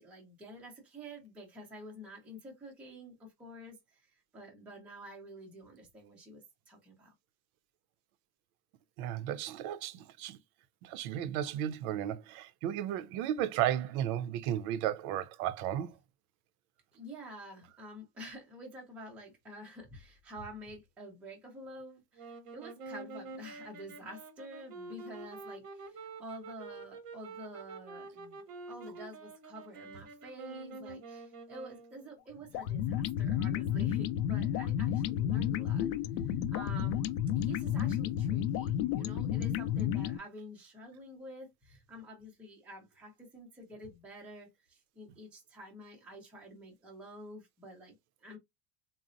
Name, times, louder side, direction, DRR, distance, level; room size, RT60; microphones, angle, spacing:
voice 1, 0.0-4.0 4.3-7.1 16.9-28.4 28.7-35.9 36.5-37.0 37.3-47.9 48.2-48.4, equal, 5° right, 0.4 m, -49 dB
voice 2, 9.0-10.4 10.8-15.9, right 11 dB, 60° right, 0.5 m, -34 dB
sound 1, 22.2-32.2, right 3 dB, 30° right, 0.7 m, -47 dB
sound 2, 32.5-40.2, left 10 dB, 70° left, 0.5 m, -31 dB
3.8 x 2.0 x 2.5 m
cardioid pair, 165°, 49 cm